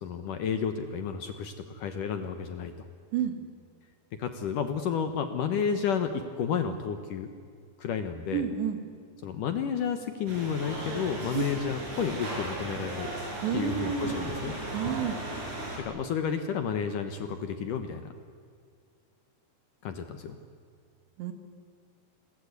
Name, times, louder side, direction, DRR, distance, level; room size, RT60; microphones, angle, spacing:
voice 1, 0.0-2.7 4.2-7.3 7.8-8.5 9.2-13.1 13.5-14.5 15.8-18.1 19.8-20.4, left 7 dB, 65° left, 8 dB, 2.2 m, -31 dB
voice 2, 8.3-8.8 11.3-11.4 13.4-15.2 21.2-21.3, right 9 dB, 85° right, 7 dB, 4.1 m, -31 dB
sound 1, 10.3-15.8, right 1 dB, 45° right, 7.2 m, -36 dB
30.0 x 22.0 x 8.2 m, 2.2 s
omnidirectional pair, 4.9 m